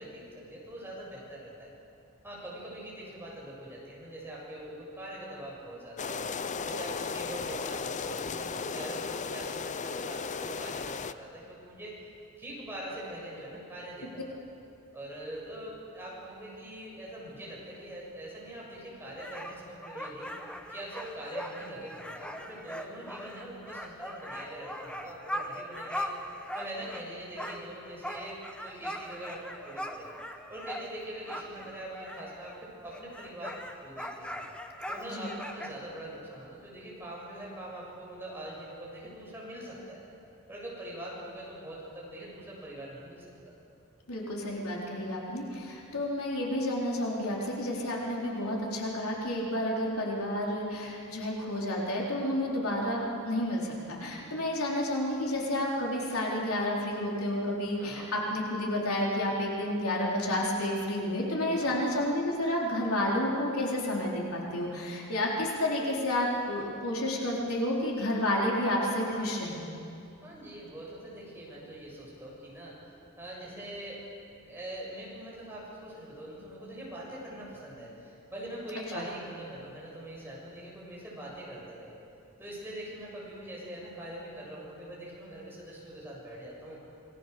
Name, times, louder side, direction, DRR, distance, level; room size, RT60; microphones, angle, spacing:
voice 1, 0.0-1.7 2.2-6.3 6.6-12.0 12.4-14.2 14.9-20.3 20.7-26.1 26.5-30.1 30.5-34.4 34.9-40.0 40.5-43.5 57.8-58.1 61.6-61.9 70.2-74.0 74.4-81.9 82.4-86.8, right 1 dB, 10° right, -5 dB, 7.3 m, -43 dB
sound 1, 6.0-11.1, left 5 dB, 35° left, 0.6 m, -35 dB
sound 2, 19.2-27.1 27.4-32.6 32.9-35.7, equal, 5° left, 1.3 m, -40 dB
voice 2, 44.1-69.6 78.9-79.0, left 1 dB, 75° left, -3 dB, 4.2 m, -30 dB
27.5 x 20.5 x 6.9 m, 2.6 s
head